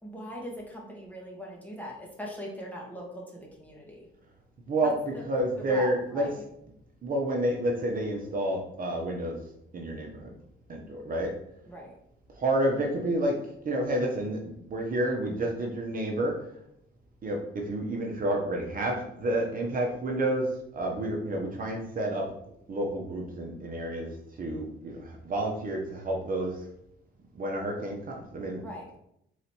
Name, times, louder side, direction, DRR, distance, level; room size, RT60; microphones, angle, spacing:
voice 1, 0.0-4.1 4.8-5.2 5.6-6.4 11.7-11.9 28.6-28.9, equal, 10° left, -3 dB, 1.5 m, -40 dB
voice 2, 5.3-6.3 7.0-9.4 9.7-10.3 10.7-11.3 12.4-13.3 13.6-16.4 17.2-22.3 22.7-24.1 24.4-26.6 27.3-28.6, right 1 dB, 45° right, 0 dB, 0.9 m, -29 dB
3.9 x 3.1 x 4.3 m, 0.75 s
cardioid pair, 90°, 20 cm